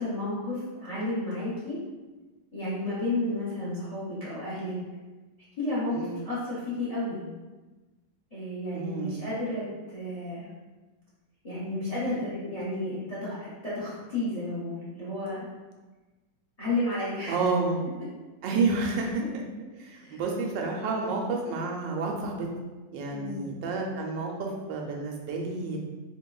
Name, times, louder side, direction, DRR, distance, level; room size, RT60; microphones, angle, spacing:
voice 1, 0.0-1.8 2.5-4.7 5.6-7.3 8.3-10.5 11.4-15.5 16.6-17.5 20.0-20.2 23.1-23.4, left 2 dB, 35° left, -9 dB, 0.6 m, -32 dB
voice 2, 5.9-6.2 8.7-9.2 12.1-12.2 17.3-17.8 18.4-19.2 19.8-22.5 22.9-25.8, right 3 dB, 90° right, 0 dB, 1.3 m, -30 dB
4.2 x 3.2 x 2.3 m, 1.2 s
omnidirectional pair, 1.9 m